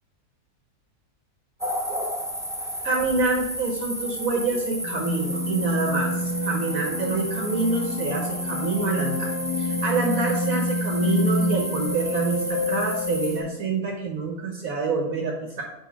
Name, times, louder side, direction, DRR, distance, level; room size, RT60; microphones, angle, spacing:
sound 1, 1.6-13.4, equal, 5° right, 0.3 m, -33 dB
voice 1, 2.8-9.3 9.6-15.6, right 3 dB, 65° right, -1 dB, 1.4 m, -27 dB
sound 2, 4.8-13.5, left 1 dB, 80° left, 2.2 m, -28 dB
6.0 x 5.0 x 4.7 m, 0.86 s
omnidirectional pair, 1.6 m